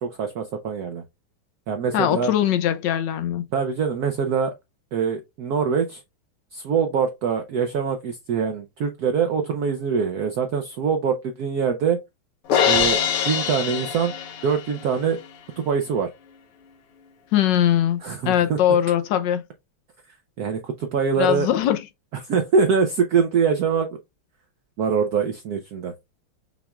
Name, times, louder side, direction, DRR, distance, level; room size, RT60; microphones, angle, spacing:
voice 1, 0.0-1.0 1.7-2.3 3.5-4.5 4.9-6.0 6.5-12.0 12.7-13.0 13.2-14.1 14.4-15.2 15.6-16.1 18.0-18.6 20.4-21.5 22.2-24.0 24.8-25.9, right 6 dB, 80° right, 0.8 m, -23 dB
voice 2, 1.9-3.5 17.3-18.0 18.2-19.4 21.2-21.8, left 10 dB, 75° left, 1.1 m, -21 dB
Crash cymbal, 12.5-14.8, left 8 dB, 90° left, 1.7 m, -23 dB
6.0 x 2.3 x 3.4 m
omnidirectional pair, 2.3 m